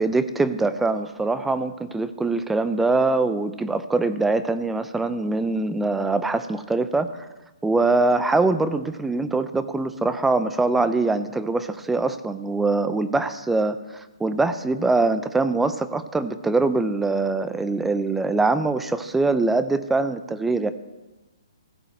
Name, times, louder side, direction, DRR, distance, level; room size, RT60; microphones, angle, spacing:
voice 1, 0.0-7.3 7.6-20.7, right 3 dB, 5° right, 12 dB, 0.4 m, -23 dB
15.5 x 5.3 x 7.6 m, 1.1 s
hypercardioid pair, 155°, 3 cm